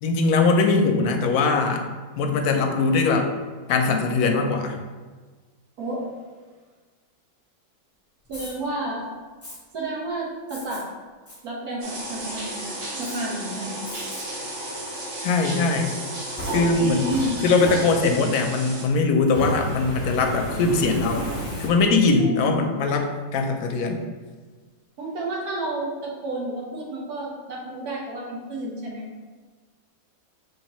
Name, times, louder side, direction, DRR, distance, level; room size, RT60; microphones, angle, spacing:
voice 1, 0.0-1.8 2.2-3.3 3.7-4.8 15.2-15.9 16.5-17.1 17.4-21.3 21.6-24.0, left 3 dB, 75° left, 4 dB, 1.0 m, -21 dB
Fire, 8.2-8.5 9.4-9.6 10.5-10.8 11.3-11.4 11.9-12.3 13.0-13.2 13.8-14.2 14.7-14.8 15.9-18.3 19.2-22.1, equal, 15° left, 0.6 m, -34 dB
voice 2, 8.3-9.1 9.7-10.8 11.4-12.7 13.0-13.8 16.8-17.4 22.2-22.6 25.0-29.3, right 1 dB, 70° right, -3 dB, 1.5 m, -31 dB
sound 1, 11.8-18.8, right 1 dB, 45° right, 1.0 m, -33 dB
5.6 x 3.1 x 3.0 m, 1.4 s
omnidirectional pair, 1.7 m